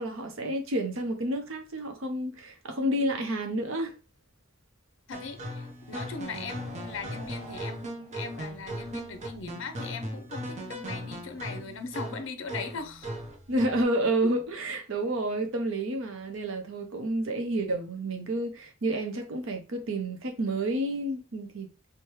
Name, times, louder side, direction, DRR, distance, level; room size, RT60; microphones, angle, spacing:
voice 1, 0.0-3.9 13.5-21.7, right 1 dB, 70° right, 0.8 m, -30 dB
voice 2, 5.1-13.1 14.2-14.3, left 4 dB, 65° left, 0.6 m, -39 dB
sound 1, 5.1-13.8, right 1 dB, 35° right, 0.7 m, -38 dB
4.6 x 2.2 x 3.1 m
head